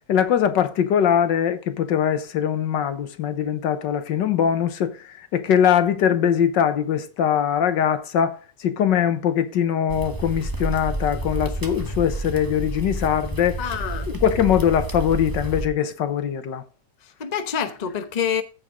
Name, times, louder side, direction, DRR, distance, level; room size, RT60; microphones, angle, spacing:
voice 1, 0.1-13.6 14.1-16.6, left 9 dB, 85° left, 1.7 m, -22 dB
sound 1, 9.9-15.7, right 2 dB, 15° right, 1.0 m, -30 dB
voice 2, 13.6-14.1 17.0-18.4, left 8 dB, 35° left, 0.7 m, -27 dB
14.5 x 5.3 x 3.5 m
omnidirectional pair, 1.9 m